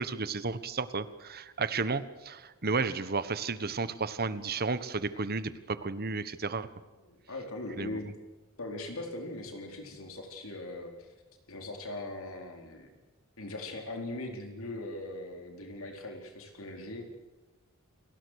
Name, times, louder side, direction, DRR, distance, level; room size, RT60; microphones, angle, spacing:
voice 1, 0.0-6.7 7.8-8.0, right 4 dB, 45° right, 14 dB, 1.4 m, -33 dB
voice 2, 7.0-8.1 8.6-11.1 11.5-12.9 13.4-17.1, left 2 dB, 70° left, 3 dB, 4.4 m, -40 dB
28.5 x 20.0 x 6.6 m, 1.2 s
head